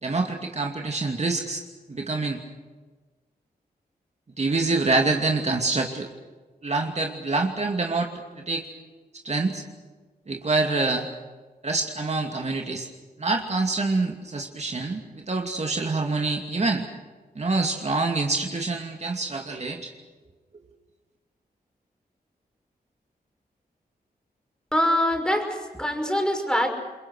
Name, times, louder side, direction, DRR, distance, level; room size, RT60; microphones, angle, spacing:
voice 1, 0.0-1.6 1.9-2.4 4.4-6.1 6.6-8.7 9.2-9.6 10.3-11.1 11.6-12.9 13.2-16.9 17.4-19.9, right 3 dB, 45° right, 2 dB, 2.6 m, -26 dB
voice 2, 24.7-26.7, left 1 dB, 5° left, 3 dB, 5.9 m, -24 dB
29.0 x 22.5 x 6.4 m, 1.3 s
cardioid pair, 65°, 16 cm